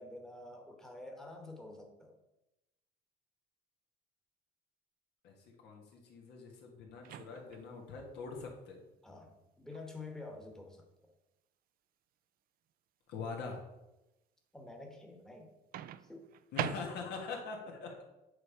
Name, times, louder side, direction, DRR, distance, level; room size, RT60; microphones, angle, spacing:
voice 1, 0.0-2.1 9.0-10.8 14.5-15.5 16.1-16.3, left 2 dB, 5° left, 2 dB, 1.1 m, -48 dB
voice 2, 5.6-8.8 13.1-13.6 16.5-18.0, left 4 dB, 80° left, 1 dB, 1.7 m, -43 dB
Microwave oven, 7.0-7.7 9.7-9.9 15.7-17.3, right 11 dB, 60° right, 0.4 m, -41 dB
8.1 x 3.4 x 5.5 m, 0.97 s
cardioid pair, 110°, 17 cm